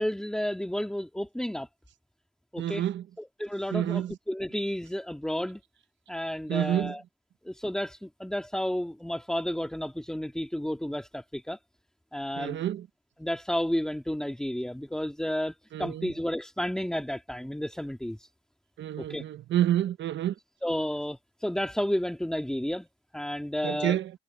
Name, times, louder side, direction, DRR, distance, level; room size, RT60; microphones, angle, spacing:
voice 1, 0.0-1.7 2.5-2.8 3.2-5.6 6.1-7.0 7.5-11.6 12.1-12.6 13.2-18.3 19.0-19.2 20.6-22.9 23.1-24.0, equal, 5° left, 2.1 m, -31 dB
voice 2, 2.6-3.1 3.7-4.2 6.5-6.9 12.4-12.9 15.7-16.1 18.8-20.3 23.6-24.1, right 12 dB, 70° right, 1.0 m, -28 dB
cardioid pair, 90°, 20 cm